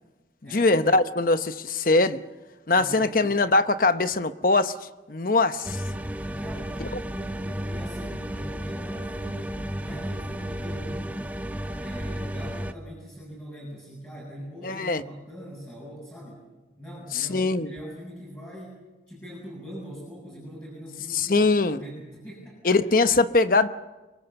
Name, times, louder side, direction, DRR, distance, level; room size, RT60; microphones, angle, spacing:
voice 1, 0.5-2.2 2.7-4.7 5.1-5.8 6.8-6.9 14.6-15.0 17.1-17.7 21.1-21.8 22.6-23.7, left 3 dB, 50° left, 0.9 m, -22 dB
voice 2, 2.7-3.3 6.4-11.1 11.8-16.5 16.8-18.8 19.1-22.8, equal, 10° left, 7.6 m, -42 dB
sound 1, 5.6-12.7, equal, 10° right, 0.8 m, -33 dB
26.0 x 24.0 x 6.9 m
head